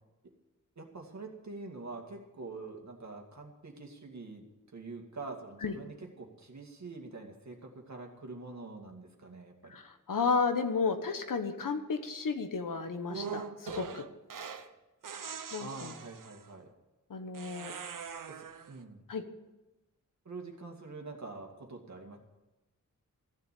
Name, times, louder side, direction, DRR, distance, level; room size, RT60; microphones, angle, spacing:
voice 1, 0.8-4.5 4.7-9.8 15.6-16.7 18.3-19.0 20.2-22.2, right 3 dB, 60° right, 2 dB, 2.3 m, -45 dB
voice 2, 9.7-14.0 15.5-15.9 17.1-17.7 19.1-19.2, left 5 dB, 80° left, 7 dB, 1.4 m, -33 dB
sound 1, 13.1-14.7 15.0-16.5 17.3-18.8, right 6 dB, 80° right, 0.9 m, -42 dB
15.0 x 7.1 x 10.0 m, 1.1 s
wide cardioid pair, 120°, 32 cm